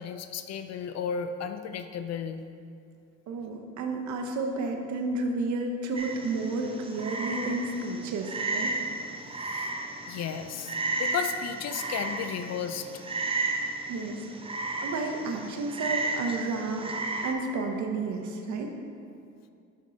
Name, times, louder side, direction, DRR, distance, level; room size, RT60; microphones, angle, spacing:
voice 1, 0.0-2.4 9.5-9.7 10.1-13.0, left 7 dB, 60° left, 9 dB, 0.4 m, -34 dB
voice 2, 3.3-8.7 13.9-16.9 17.2-18.7, right 3 dB, 70° right, 3 dB, 0.8 m, -31 dB
Frog, 6.0-17.3, right 3 dB, 20° right, 0.5 m, -33 dB
5.3 x 5.3 x 3.8 m, 2.4 s
cardioid pair, 90°, 30 cm